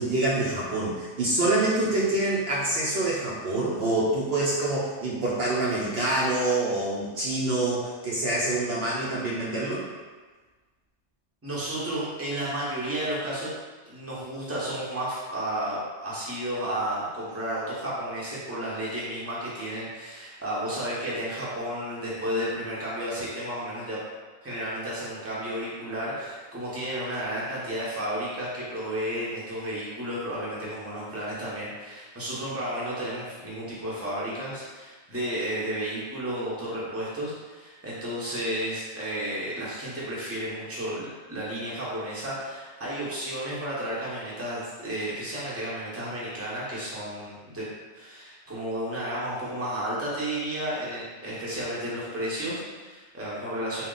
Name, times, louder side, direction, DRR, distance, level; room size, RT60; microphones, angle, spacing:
voice 1, 0.0-9.8, right 2 dB, 65° right, -5 dB, 0.8 m, -26 dB
voice 2, 11.4-13.5 13.8-24.0 24.4-47.7 47.9-53.9, right 1 dB, 15° right, -8 dB, 0.9 m, -32 dB
3.6 x 2.3 x 3.8 m, 1.3 s
omnidirectional pair, 1.2 m